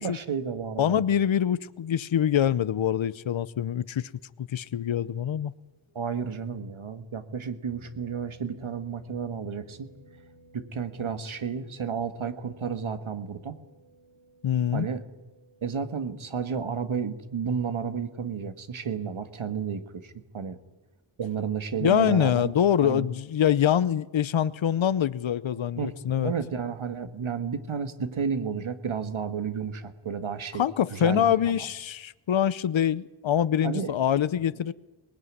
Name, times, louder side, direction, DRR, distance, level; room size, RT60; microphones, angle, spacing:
voice 1, 0.0-1.0 5.9-9.9 10.5-13.5 14.7-15.0 15.6-20.6 21.2-22.5 22.8-23.1 25.8-30.6 30.9-31.7 33.6-33.9, right 6 dB, 85° right, 1.7 m, -32 dB
voice 2, 0.8-4.1 4.4-5.5 14.4-14.9 21.8-26.3 30.6-34.7, left 9 dB, 70° left, 0.8 m, -25 dB
sound 1, 7.7-16.7, right 1 dB, 60° right, 4.2 m, -57 dB
23.5 x 19.5 x 9.6 m
wide cardioid pair, 55°, 48 cm